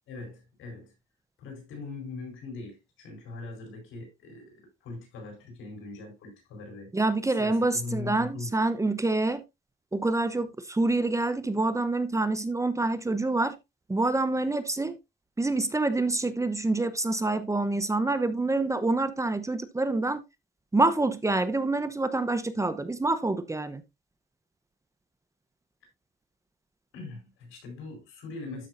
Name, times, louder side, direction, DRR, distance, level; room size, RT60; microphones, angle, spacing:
voice 1, 0.1-0.9 1.4-6.9 7.3-8.6 26.9-28.7, left 3 dB, 85° left, 4.6 m, -41 dB
voice 2, 6.9-9.4 9.9-13.6 13.9-14.9 15.4-20.2 20.7-23.8, right 2 dB, 15° right, 0.9 m, -26 dB
12.5 x 5.4 x 2.6 m
cardioid pair, 90°, 20 cm